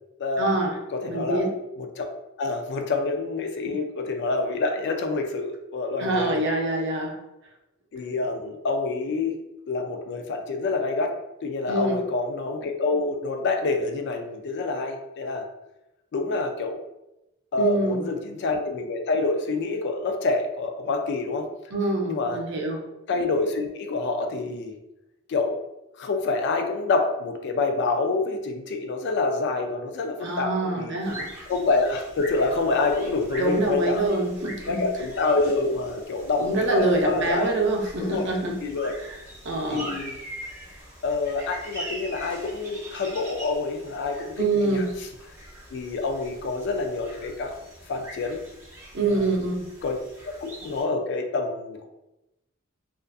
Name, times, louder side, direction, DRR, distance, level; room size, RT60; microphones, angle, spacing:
voice 1, 0.4-0.8 1.1-1.5 6.0-7.2 11.7-11.9 17.6-18.0 21.7-22.8 30.2-31.3 33.4-34.9 36.4-38.6 39.0-39.9 44.4-44.9 48.9-49.7, right 2 dB, 60° right, 1 dB, 0.5 m, -25 dB
voice 2, 0.9-1.5 1.8-2.1 2.4-6.5 7.9-9.4 9.7-11.1 11.4-15.4 16.1-16.8 17.5-21.5 22.1-22.4 23.1-24.8 25.3-25.6 26.0-31.0 31.5-34.0 34.7-37.6 38.0-38.9 39.7-40.2 41.0-44.8 45.7-47.6 47.9-48.4 49.0-49.2 49.8-50.0 50.3-51.9, left 3 dB, 55° left, 4 dB, 0.3 m, -27 dB
sound 1, 31.0-50.8, right 1 dB, 15° right, 0.9 m, -43 dB
2.4 x 2.4 x 2.3 m, 0.92 s
head